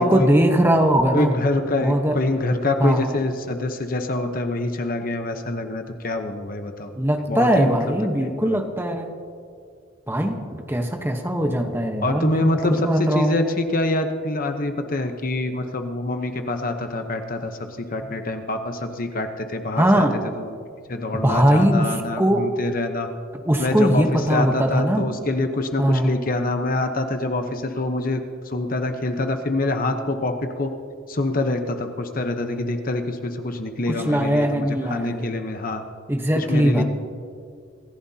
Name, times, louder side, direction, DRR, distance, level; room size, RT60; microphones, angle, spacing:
voice 1, 0.0-1.4 1.8-2.2 2.8-3.2 7.0-9.1 10.1-10.4 10.7-13.4 19.7-20.1 21.1-22.5 23.5-25.1 25.8-26.1 33.9-35.2 36.1-36.8, equal, 10° right, 4 dB, 1.0 m, -20 dB
voice 2, 1.1-6.9 7.3-7.8 8.2-8.6 12.0-20.1 20.4-20.5 20.9-23.1 23.6-30.7 31.1-35.8 36.3-36.8, left 2 dB, 45° left, 6 dB, 0.9 m, -25 dB
26.5 x 15.0 x 2.8 m, 2.3 s
head